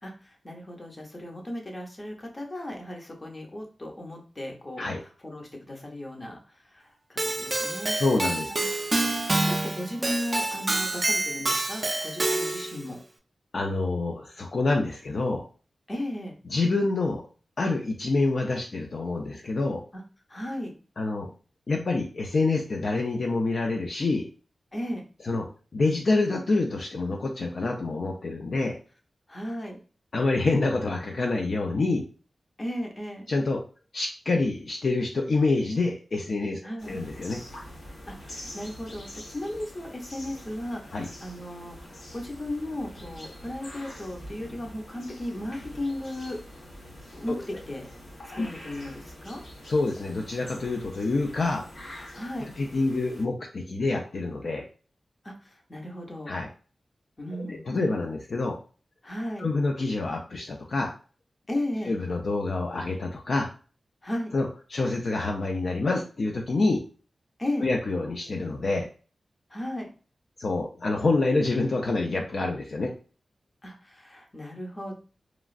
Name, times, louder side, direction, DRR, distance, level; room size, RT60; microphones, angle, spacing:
voice 1, 0.0-6.4 6.7-8.0 8.5-8.7 9.4-13.0 15.9-16.4 19.9-20.0 20.3-20.7 24.7-25.0 29.3-29.8 32.6-33.3 36.6-37.0 38.1-46.4 47.1-47.9 48.3-49.4 52.1-52.5 55.2-56.3 57.2-57.7 59.0-59.5 61.5-61.9 64.0-64.3 67.4-67.7 69.5-69.9 73.6-74.9, left 1 dB, 30° left, 1 dB, 0.8 m, -35 dB
Keyboard (musical), 7.2-12.8, right 2 dB, 30° right, 0.4 m, -27 dB
voice 2, 8.0-8.5 13.5-15.5 16.5-17.2 17.6-19.8 21.0-21.3 21.7-24.3 25.2-25.4 25.7-28.8 30.1-32.0 33.3-33.6 33.9-36.6 36.9-37.4 40.9-41.1 47.3-47.4 48.4-48.5 49.7-51.7 52.6-54.6 56.3-56.5 57.4-58.6 59.4-60.9 61.9-63.5 64.3-66.8 67.6-68.9 70.4-72.9, left 3 dB, 60° left, 1 dB, 0.4 m, -27 dB
sound 1, 36.8-53.2, equal, 75° left, 1.1 m, -45 dB
3.0 x 2.4 x 2.4 m, 0.37 s
wide cardioid pair, 85°, 0 cm